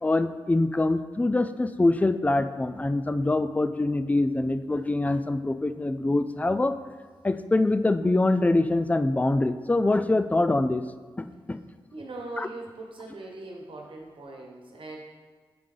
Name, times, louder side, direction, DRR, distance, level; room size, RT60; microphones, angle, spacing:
voice 1, 0.0-6.7 7.2-10.8 11.2-11.6 12.4-12.5, left 2 dB, 15° left, 10 dB, 0.4 m, -24 dB
voice 2, 11.9-15.0, right 2 dB, 70° right, 0 dB, 1.1 m, -40 dB
7.6 x 4.8 x 3.8 m, 1.5 s
cardioid pair, 55°, 9 cm